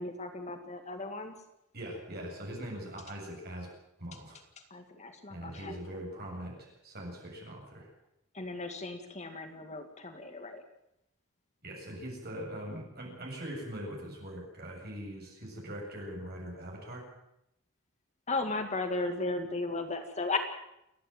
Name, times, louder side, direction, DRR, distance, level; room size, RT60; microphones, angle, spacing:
voice 1, 0.0-1.3 4.7-5.8 8.3-10.6 18.3-20.4, left 3 dB, 35° left, 6 dB, 1.9 m, -35 dB
voice 2, 1.7-3.7 4.0-4.4 5.3-7.9 11.6-17.0, equal, 50° right, -1 dB, 7.9 m, -41 dB
29.0 x 10.5 x 9.2 m, 0.82 s
head